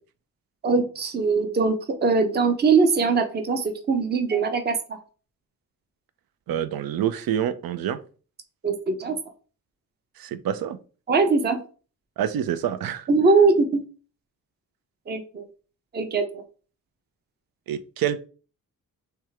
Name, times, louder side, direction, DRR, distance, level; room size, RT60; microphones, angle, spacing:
voice 1, 0.6-5.0 8.6-9.2 11.1-11.6 13.1-13.8 15.1-15.4 15.9-16.4, right 4 dB, 30° right, 0.6 m, -21 dB
voice 2, 6.5-8.0 10.2-10.8 12.2-13.1 17.7-18.3, right 10 dB, 80° right, 0.6 m, -27 dB
3.4 x 3.2 x 4.7 m
wide cardioid pair, 155°, 35 cm